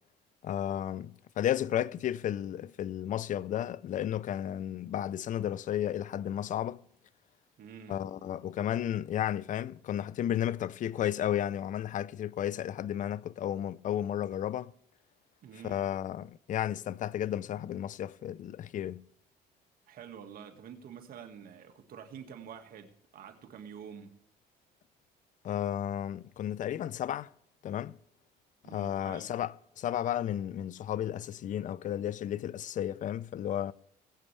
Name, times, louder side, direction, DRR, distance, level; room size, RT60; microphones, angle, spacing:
voice 1, 0.4-6.8 7.9-14.7 15.6-19.1 25.4-27.3 27.6-28.0 28.7-33.7, left 11 dB, 50° left, 0.5 m, -33 dB
voice 2, 7.6-8.0 15.4-15.8 19.9-24.1 28.6-29.4, right 7 dB, 60° right, 1.8 m, -48 dB
20.0 x 8.6 x 3.3 m
cardioid pair, 110°, 17 cm